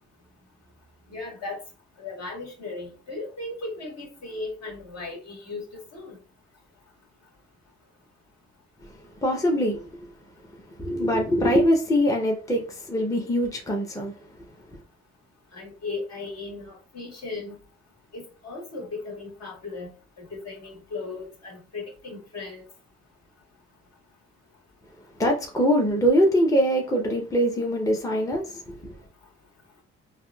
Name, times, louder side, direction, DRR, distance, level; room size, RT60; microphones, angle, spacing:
voice 1, 1.1-1.6 2.0-6.2 15.5-17.6 18.1-19.9 20.2-22.6, left 3 dB, 60° left, 1.5 m, -36 dB
voice 2, 9.2-9.9 10.8-14.1 25.2-29.0, equal, 10° left, 0.6 m, -23 dB
3.5 x 2.5 x 2.3 m
cardioid pair, 90°, 30 cm